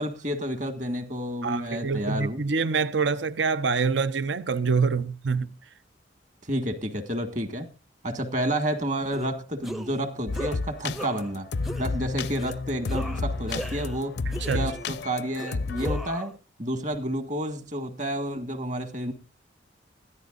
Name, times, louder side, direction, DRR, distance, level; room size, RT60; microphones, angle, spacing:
voice 1, 0.0-2.4 6.5-7.7 8.0-11.5 11.8-14.2 14.5-16.3 16.6-19.1, right 1 dB, 40° right, 1.7 m, -30 dB
voice 2, 1.4-5.5 14.4-14.7, right 5 dB, 70° right, 0.7 m, -26 dB
sound 1, 9.1-9.3 9.6-10.0 10.3-10.6 10.9-11.3 11.6-11.9 12.4-12.6 12.9-14.0 14.3-14.9 15.4-16.3, right 1 dB, ahead, 0.6 m, -38 dB
sound 2, 10.3-16.1, left 3 dB, 60° left, 0.5 m, -31 dB
20.5 x 13.5 x 2.5 m
head